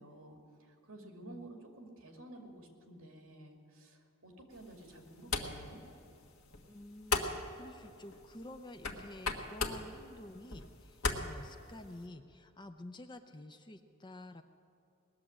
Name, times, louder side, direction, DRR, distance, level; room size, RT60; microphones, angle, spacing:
voice 1, 0.0-5.8, right 1 dB, 65° right, 2 dB, 2.3 m, -52 dB
voice 2, 1.0-1.5 6.6-14.4, left 1 dB, 20° left, 8 dB, 0.5 m, -50 dB
sound 1, 4.5-12.1, left 3 dB, 80° left, 1.4 m, -40 dB
19.5 x 7.4 x 10.0 m, 2.6 s
head